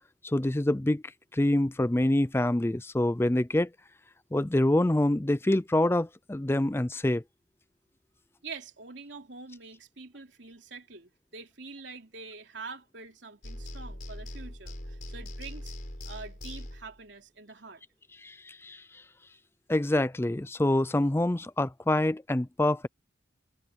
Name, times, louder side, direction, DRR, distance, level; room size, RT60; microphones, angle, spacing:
voice 1, 0.2-1.0 1.3-3.7 4.3-7.2 18.2-18.8 19.7-22.9, left 1 dB, 15° left, 0.4 m, -26 dB
voice 2, 8.4-15.7 16.0-17.8, right 4 dB, 75° right, 3.1 m, -45 dB
sound 1, 13.4-17.0, left 1 dB, 45° left, 4.6 m, -41 dB
head